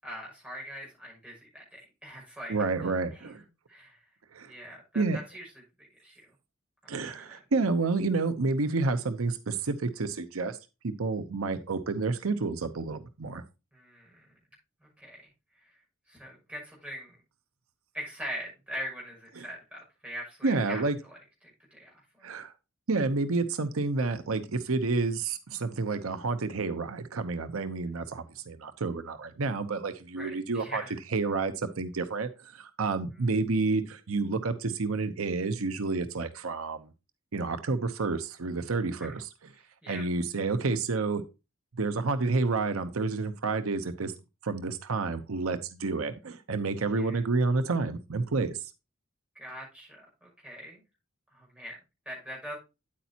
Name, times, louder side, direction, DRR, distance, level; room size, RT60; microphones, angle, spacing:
voice 1, 0.0-3.3 3.7-4.0 4.4-5.5 6.0-6.3 7.1-7.2 13.7-14.3 14.8-15.3 16.1-17.2 17.9-20.8 21.7-22.3 30.2-30.9 39.0-39.1 39.8-40.0 46.9-47.2 49.3-50.8 51.3-51.8 52.0-52.5, equal, 5° right, -3 dB, 6.2 m, -42 dB
voice 2, 2.5-3.4 4.3-4.5 4.9-5.2 6.9-10.6 10.8-13.4 19.4-19.5 20.4-21.0 22.2-22.5 22.9-30.8 31.1-36.9 37.3-39.3 39.9-41.2 41.8-44.1 44.4-48.7, right 3 dB, 85° right, 11 dB, 0.8 m, -29 dB
9.3 x 8.5 x 2.8 m, 0.27 s
head